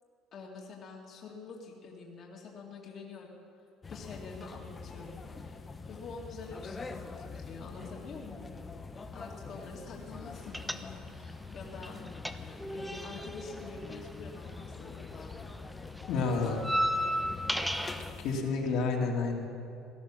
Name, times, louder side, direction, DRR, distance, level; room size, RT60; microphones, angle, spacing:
voice 1, 0.3-8.5 9.1-12.2 12.7-15.3 16.3-16.7, left 4 dB, 40° left, -2 dB, 2.0 m, -47 dB
sound 1, 3.8-18.4, left 4 dB, 20° left, 1.0 m, -45 dB
sound 2, 10.5-11.3 11.6-15.0 15.2-18.1, equal, ahead, 0.6 m, -34 dB
voice 2, 16.1-16.6 18.2-19.5, left 4 dB, 65° left, 0 dB, 2.3 m, -30 dB
18.0 x 13.0 x 6.2 m, 2.6 s
cardioid pair, 145°, 0 cm